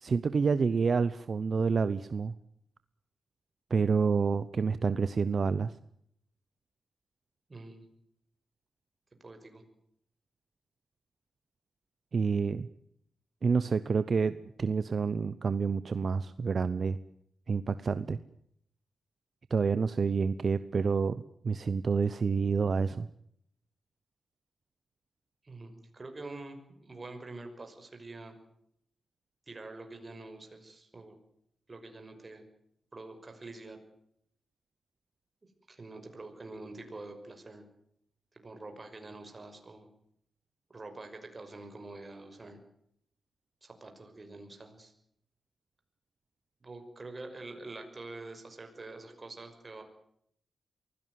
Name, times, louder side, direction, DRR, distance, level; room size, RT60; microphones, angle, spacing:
voice 1, 0.0-2.3 3.7-5.7 12.1-12.7 13.4-17.0 17.5-18.2 19.5-23.1, right 5 dB, 55° right, 14 dB, 0.9 m, -28 dB
voice 2, 7.5-7.9 9.2-9.6 25.4-28.4 29.5-31.2 31.7-32.4 32.9-33.8 35.7-37.7 38.4-39.9 40.7-42.6 43.6-44.9 46.6-49.8, right 2 dB, 35° right, 5 dB, 5.9 m, -46 dB
23.5 x 16.5 x 9.4 m, 0.73 s
cardioid pair, 75°, 0 cm